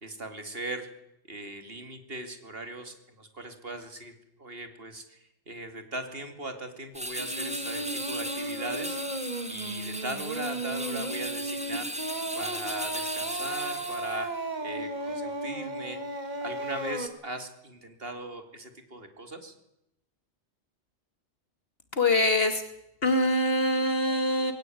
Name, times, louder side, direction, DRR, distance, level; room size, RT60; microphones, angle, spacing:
voice 1, 0.0-0.9 1.3-4.1 4.4-16.0 16.4-19.5, right 1 dB, 55° right, 7 dB, 2.9 m, -39 dB
sound 1, 6.9-14.3, equal, 5° right, 1.9 m, -37 dB
Singing, 7.2-17.1, right 2 dB, 40° right, 2.1 m, -35 dB
voice 2, 21.9-22.6 23.0-24.5, left 1 dB, 55° left, 7 dB, 2.8 m, -24 dB
21.5 x 17.0 x 9.3 m, 0.82 s
omnidirectional pair, 1.2 m